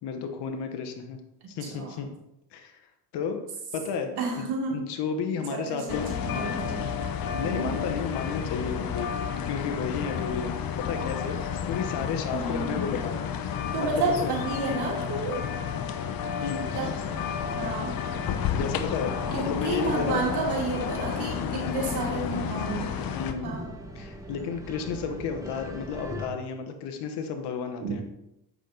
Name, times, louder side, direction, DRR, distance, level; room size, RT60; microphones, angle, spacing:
voice 1, 0.0-1.2 1.5-2.1 2.5-2.7 3.1-3.4 3.7-4.1 4.7-6.6 7.4-9.1 9.5-13.9 14.2-14.3 14.7-14.9 15.2-15.4 16.4-16.7 18.5-20.3 21.5-21.8 23.1-23.6 23.9-28.0, left 6 dB, 80° left, 6 dB, 1.1 m, -33 dB
voice 2, 4.2-4.9 5.5-6.8 7.3-7.7 12.3-13.0 13.7-15.4 16.7-16.9 17.6-18.0 19.3-23.0 23.4-23.7 27.8-28.0, right 3 dB, 75° right, -2 dB, 2.9 m, -31 dB
sound 1, 5.9-23.3, left 7 dB, 60° left, 0.8 m, -31 dB
sound 2, 16.6-26.3, equal, 10° right, 1.4 m, -41 dB
8.2 x 6.0 x 3.9 m, 0.86 s
cardioid pair, 95°, 40 cm